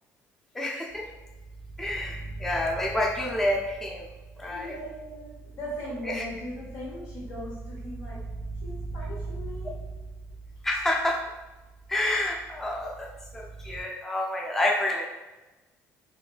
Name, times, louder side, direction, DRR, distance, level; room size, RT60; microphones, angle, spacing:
voice 1, 0.5-1.1 1.8-4.1 4.4-4.7 6.1-6.2 10.6-11.2 11.9-15.1, left 1 dB, 5° left, -1 dB, 0.4 m, -28 dB
sound 1, 0.9-13.8, right 3 dB, 25° left, 1.4 m, -41 dB
voice 2, 4.5-8.2 8.6-9.8, left 1 dB, 75° left, -4 dB, 1.4 m, -39 dB
4.6 x 2.2 x 2.4 m, 1.1 s
cardioid pair, 140°, 6 cm